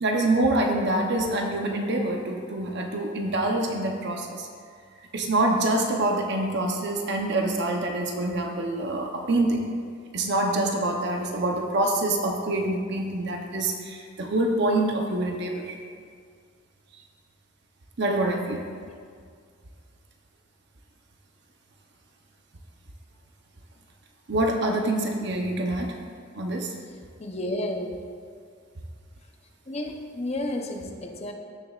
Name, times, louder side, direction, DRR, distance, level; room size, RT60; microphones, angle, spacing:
voice 1, 0.0-4.5 5.1-9.7 10.1-15.8 18.0-18.6 24.3-25.9 26.3-26.7, right 2 dB, 55° right, 2 dB, 0.8 m, -26 dB
voice 2, 27.2-28.0 29.7-31.3, left 1 dB, 30° left, 3 dB, 0.7 m, -31 dB
15.5 x 6.7 x 2.4 m, 2.1 s
head